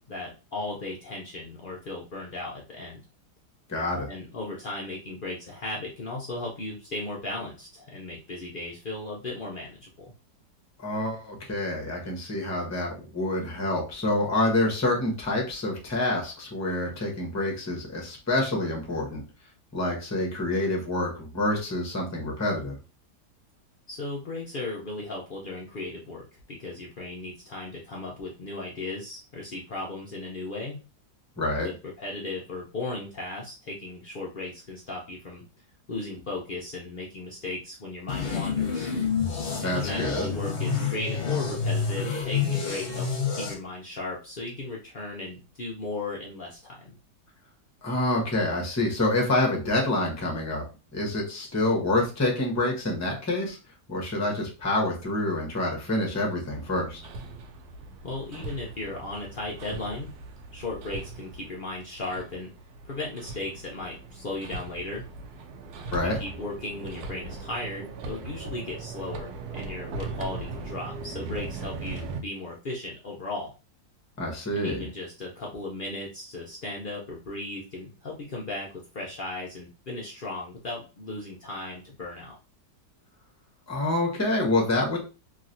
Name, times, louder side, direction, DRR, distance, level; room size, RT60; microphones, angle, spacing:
voice 1, 0.1-3.0 4.1-10.1 23.9-30.8 31.6-35.4 35.9-38.9 39.6-46.9 58.0-60.1 60.5-62.5 62.9-65.0 66.0-73.5 74.5-82.3, left 2 dB, 85° left, -3 dB, 0.4 m, -36 dB
voice 2, 3.7-4.1 10.8-19.2 19.7-22.8 31.4-31.7 39.6-40.2 47.8-50.6 50.9-53.6 53.9-57.0 65.9-66.2 74.2-74.9 83.7-85.0, left 1 dB, 20° left, -1 dB, 0.4 m, -27 dB
sound 1, 38.1-43.5, left 6 dB, 50° left, 0.8 m, -28 dB
Hammer, 56.5-72.2, right 3 dB, 75° right, 1.1 m, -39 dB
3.1 x 2.8 x 2.6 m, 0.31 s
omnidirectional pair, 1.8 m